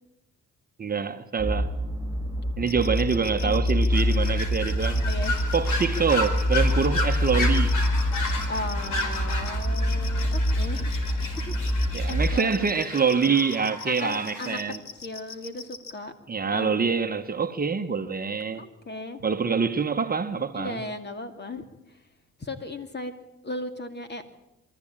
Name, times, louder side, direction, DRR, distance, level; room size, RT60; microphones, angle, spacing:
voice 1, 0.8-1.7 2.6-5.0 5.5-7.8 11.9-14.8 16.3-18.6 19.2-20.8, right 5 dB, 30° right, 1.1 m, -25 dB
sound 1, 1.4-12.4, equal, 10° right, 1.5 m, -26 dB
sound 2, 2.7-15.9, left 5 dB, 65° left, 2.3 m, -41 dB
sound 3, 3.9-14.6, left 2 dB, 80° left, 4.1 m, -34 dB
voice 2, 5.0-5.3 8.5-10.9 11.5-11.8 12.1-12.6 13.8-14.6 15.0-16.1 16.5-16.8 18.6-19.2 20.5-22.0 22.4-23.1 23.4-24.2, left 2 dB, 35° left, 2.5 m, -36 dB
24.0 x 13.5 x 8.7 m
cardioid pair, 90°, 30 cm